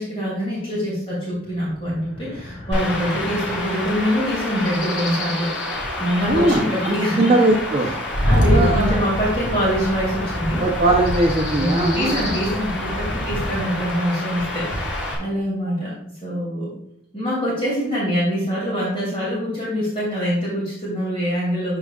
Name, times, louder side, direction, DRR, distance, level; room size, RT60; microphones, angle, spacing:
voice 1, 0.0-5.5 6.0-7.3 7.8-7.9 8.2-10.6 11.6-15.9 16.2-16.7 17.1-21.8, equal, 30° left, -6 dB, 2.9 m, -24 dB
sound 1, 1.2-6.9, left 1 dB, 45° left, 3.0 m, -41 dB
Chirp tweet / Wind / Stream, 2.7-15.1, left 1 dB, 65° left, 2.4 m, -25 dB
voice 2, 6.2-7.9 8.3-9.0 10.6-12.2, right 2 dB, 30° right, 0 dB, 0.9 m, -20 dB
12.5 x 4.9 x 2.5 m, 0.74 s
head